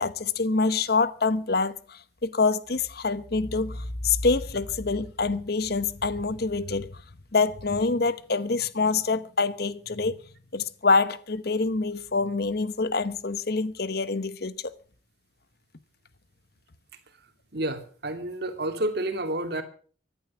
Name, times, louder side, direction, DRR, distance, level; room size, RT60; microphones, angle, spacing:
voice 1, 0.0-6.9 7.3-10.2 10.5-14.7, left 4 dB, 50° left, 0.9 m, -26 dB
voice 2, 17.5-19.6, right 1 dB, 55° right, 2.4 m, -30 dB
15.0 x 11.0 x 7.2 m
head